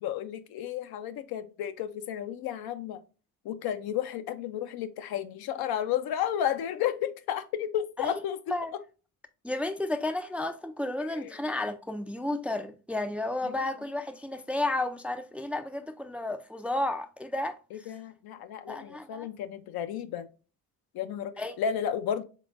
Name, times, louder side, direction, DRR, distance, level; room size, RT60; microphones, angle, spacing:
voice 1, 0.0-3.0 3.4-8.4 11.0-11.3 13.4-13.6 17.7-20.3 20.9-22.2, left 9 dB, 70° left, 0.6 m, -32 dB
voice 2, 9.4-17.9 18.7-19.3 21.4-21.6, left 2 dB, 5° right, 0.3 m, -32 dB
3.8 x 3.6 x 2.4 m
supercardioid pair, 60°, 39 cm